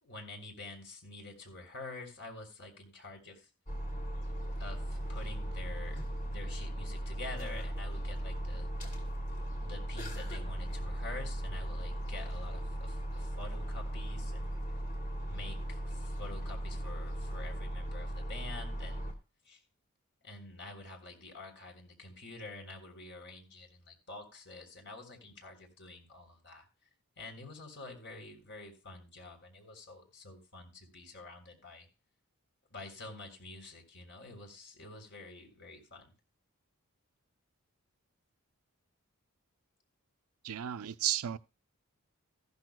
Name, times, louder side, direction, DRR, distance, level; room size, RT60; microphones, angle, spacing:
voice 1, 0.0-3.5 4.6-8.7 9.6-14.5 15.3-19.1 19.4-19.6 20.2-26.7 27.2-31.9 32.7-36.1, left 2 dB, 50° left, 3.5 m, -48 dB
sound 1, 3.7-19.1, right 1 dB, 35° left, 2.7 m, -37 dB
voice 2, 40.4-41.4, right 12 dB, 70° right, 0.5 m, -33 dB
14.5 x 12.5 x 2.2 m
head